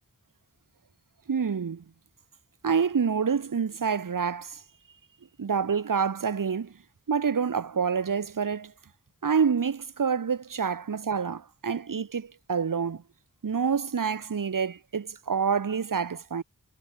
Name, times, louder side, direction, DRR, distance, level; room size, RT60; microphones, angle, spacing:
voice 1, 1.3-1.8 2.6-4.6 5.4-6.7 7.1-8.7 9.2-13.0 13.4-16.4, right 6 dB, 85° right, 1.8 m, -27 dB
wide cardioid pair, 80°, 32 cm